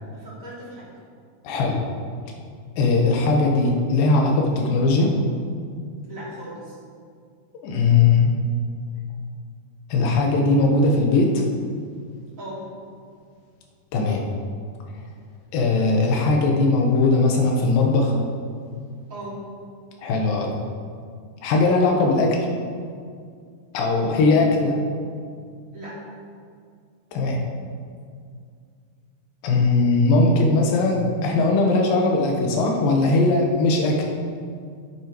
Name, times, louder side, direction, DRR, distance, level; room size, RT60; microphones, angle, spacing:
voice 1, 0.1-0.9 6.1-6.8 12.4-12.6 19.1-19.4 24.5-24.7 25.7-26.0, right 1 dB, 25° right, -8 dB, 2.4 m, -37 dB
voice 2, 1.4-1.8 2.8-5.1 7.6-8.3 9.9-11.4 13.9-14.2 15.5-18.1 20.0-20.5 21.4-22.5 23.7-24.7 27.1-27.4 29.4-34.1, left 3 dB, 70° left, 1 dB, 2.6 m, -19 dB
10.5 x 8.8 x 3.1 m, 2.2 s
omnidirectional pair, 4.6 m